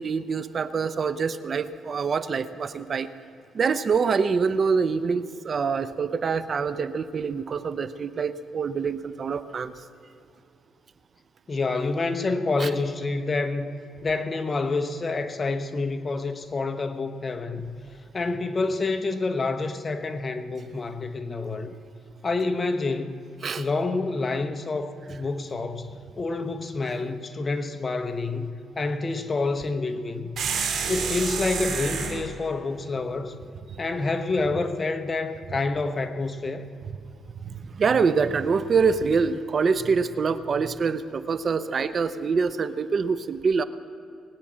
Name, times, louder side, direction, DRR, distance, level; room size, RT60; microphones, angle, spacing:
voice 1, 0.0-3.1 3.5-9.7 12.6-12.7 23.4-23.7 33.7-33.8 37.4-43.6, right 5 dB, 45° right, 0.7 m, -25 dB
voice 2, 11.5-13.7 14.0-17.7 18.1-21.7 22.2-23.2 23.5-25.9 26.2-30.4 30.9-33.3 33.8-36.7, left 3 dB, 30° left, 1.1 m, -28 dB
sound 1, 30.4-32.2, right 6 dB, 65° right, 2.9 m, -28 dB
20.5 x 9.1 x 7.4 m
cardioid pair, 90°, 0 cm